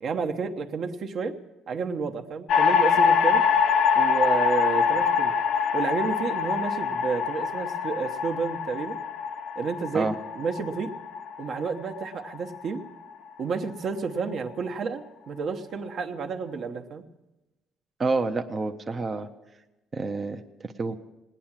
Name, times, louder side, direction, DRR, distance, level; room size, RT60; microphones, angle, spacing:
voice 1, 0.0-1.4 1.7-3.5 3.9-5.3 5.7-9.0 9.6-10.1 10.3-10.9 11.4-12.9 13.4-17.0, right 5 dB, 45° right, 5 dB, 1.0 m, -30 dB
sound 1, 2.5-12.8, left 6 dB, 55° left, 0.6 m, -24 dB
voice 2, 18.0-19.3 19.9-21.0, right 3 dB, 20° right, 6 dB, 0.6 m, -28 dB
18.0 x 10.0 x 7.4 m, 1.0 s
cardioid pair, 170°, 0 cm